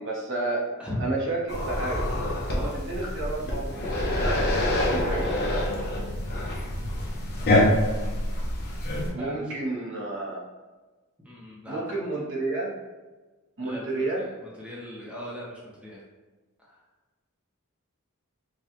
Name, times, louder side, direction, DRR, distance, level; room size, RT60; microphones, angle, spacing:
voice 1, 0.0-0.6 1.0-2.1 2.5-3.7 4.1-5.6 9.1-10.4 11.7-12.8 13.6-14.3, right 2 dB, 60° right, -4 dB, 1.0 m, -31 dB
sound 1, 1.5-9.1, left 1 dB, 50° left, 0.8 m, -26 dB
voice 2, 9.1-9.6 11.2-11.8 13.6-13.9 14.1-16.0 16.6-16.7, left 1 dB, 5° right, -6 dB, 0.8 m, -39 dB
4.9 x 2.3 x 2.9 m, 1.2 s
head